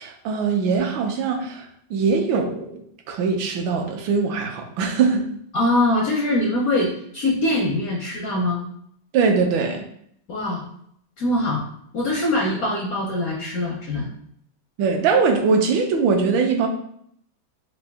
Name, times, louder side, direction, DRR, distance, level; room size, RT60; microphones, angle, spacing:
voice 1, 0.0-2.8 3.1-5.3 9.1-9.9 14.8-16.7, right 5 dB, 80° right, 3 dB, 1.3 m, -21 dB
voice 2, 5.5-8.6 10.3-10.6 11.2-11.6 11.9-14.1, left 1 dB, 70° left, -2 dB, 0.8 m, -23 dB
3.9 x 2.6 x 3.4 m, 0.68 s
omnidirectional pair, 2.2 m